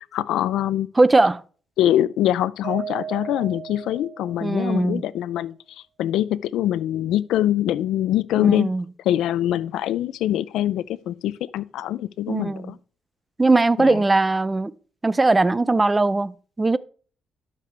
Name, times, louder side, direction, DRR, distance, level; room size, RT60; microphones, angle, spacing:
voice 1, 0.1-0.9 1.8-5.5 6.0-8.7 9.0-12.8 13.8-14.0, left 12 dB, 85° left, 0.4 m, -23 dB
voice 2, 1.0-1.4 4.4-5.0 8.4-8.8 12.3-12.7 13.4-14.7 15.0-16.8, right 2 dB, 20° right, 0.5 m, -19 dB
Mallet percussion, 2.6-4.9, right 8 dB, 85° right, 0.9 m, -36 dB
11.5 x 6.7 x 3.4 m
cardioid pair, 90°, 0 cm